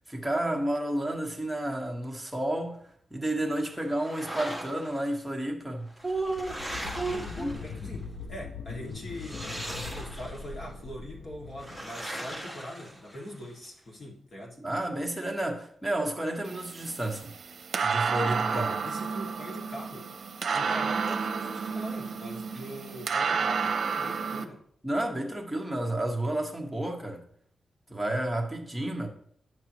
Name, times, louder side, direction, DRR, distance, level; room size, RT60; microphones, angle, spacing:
voice 1, 0.1-6.6 7.0-7.5 14.6-17.3 17.8-18.7 24.8-27.2 27.9-29.1, right 1 dB, ahead, 1.3 m, -31 dB
sound 1, 3.8-5.1 5.9-8.0 9.1-10.5 11.6-13.5, right 1 dB, 15° left, 1.3 m, -40 dB
sound 2, 6.0-12.5, left 5 dB, 85° left, 0.8 m, -41 dB
voice 2, 6.8-9.4 9.9-14.6 18.5-20.1 20.5-24.6, equal, 50° left, 2.0 m, -42 dB
sound 3, 16.4-24.4, right 5 dB, 65° right, 0.7 m, -31 dB
9.5 x 6.6 x 3.0 m
wide cardioid pair, 115°, 0 cm